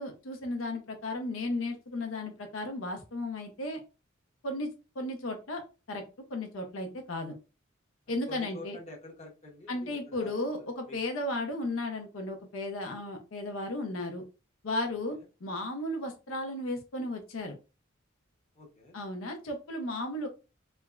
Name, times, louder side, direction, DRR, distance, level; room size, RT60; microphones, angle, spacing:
voice 1, 0.0-3.8 4.4-5.6 5.9-6.0 6.3-7.3 8.1-8.8 9.7-14.2 14.6-17.5 18.9-20.3, left 1 dB, 85° left, 4 dB, 0.6 m, -35 dB
voice 2, 8.3-11.0 14.9-15.0 18.6-19.0, left 2 dB, 35° left, -1 dB, 0.8 m, -47 dB
3.3 x 2.1 x 2.3 m, 0.30 s
head